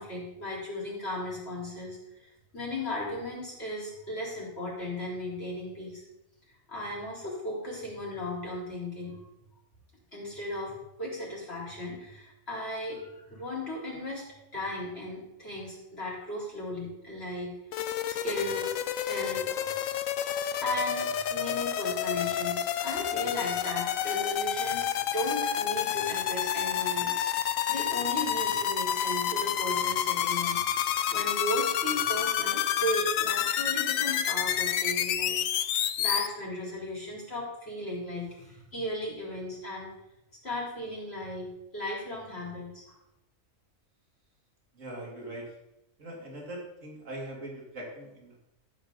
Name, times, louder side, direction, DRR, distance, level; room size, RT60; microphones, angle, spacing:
voice 1, 0.0-6.0 6.7-9.2 10.1-17.6 18.1-18.7 19.0-19.8 20.2-20.3 20.6-35.4 36.0-39.9 40.4-42.8, left 1 dB, 50° left, -5 dB, 4.2 m, -36 dB
sound 1, 17.7-36.3, left 10 dB, 80° left, 1.0 m, -29 dB
voice 2, 44.7-45.5 46.0-48.4, right 1 dB, 70° right, -2 dB, 3.1 m, -41 dB
14.0 x 7.8 x 4.0 m, 0.86 s
omnidirectional pair, 1.4 m